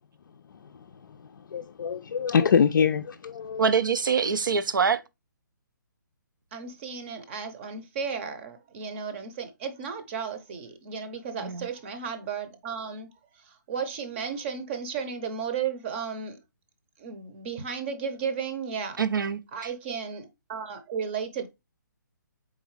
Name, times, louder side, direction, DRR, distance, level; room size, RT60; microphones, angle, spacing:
voice 1, 1.1-3.7, left 6 dB, 70° left, 0.4 m, -25 dB
voice 2, 3.6-5.0 11.4-11.7 19.0-19.4, right 6 dB, 80° right, 0.5 m, -24 dB
voice 3, 6.5-16.4 17.0-19.0 19.5-21.5, right 6 dB, 35° right, 0.7 m, -34 dB
3.9 x 3.8 x 3.1 m
hypercardioid pair, 145°, 11 cm